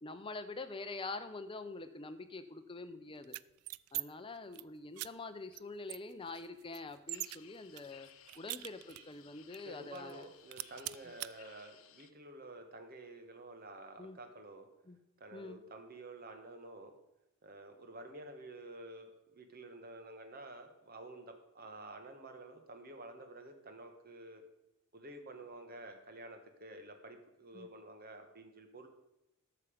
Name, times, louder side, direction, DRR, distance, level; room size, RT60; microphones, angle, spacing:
voice 1, 0.0-3.4 3.9-8.1 8.4-10.3 14.0-14.2 14.9-15.0 15.3-15.6 27.5-27.7, left 3 dB, 25° left, 9 dB, 0.7 m, -45 dB
sound 1, 3.2-4.0 4.4-4.6 5.0-5.1 5.5-5.6 5.9-7.4 7.8-9.2 9.5-9.6 9.9-10.2 10.5-11.3, right 19 dB, 90° right, 0.3 m, -42 dB
sound 2, 7.1-12.1, left 10 dB, 70° left, 0.7 m, -60 dB
voice 2, 9.6-14.7 15.2-16.9 17.4-24.4 24.9-28.9, right 2 dB, 45° right, 6 dB, 1.3 m, -50 dB
12.0 x 7.0 x 5.1 m, 0.91 s
head